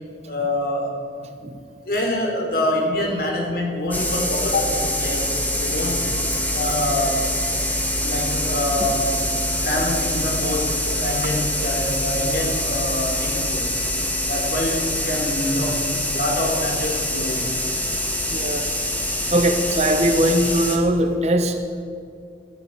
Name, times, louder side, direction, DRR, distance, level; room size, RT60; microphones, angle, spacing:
voice 1, 0.2-1.3 1.9-6.1 6.5-7.3 8.0-9.1 9.6-13.8 14.3-17.5 19.0-19.1, left 1 dB, 55° left, 0 dB, 3.7 m, -26 dB
sound 1, 3.9-20.8, left 1 dB, 10° left, 1.6 m, -25 dB
voice 2, 18.3-18.7 19.3-21.8, right 1 dB, 40° right, 6 dB, 1.1 m, -20 dB
19.5 x 13.5 x 4.8 m, 2.4 s
head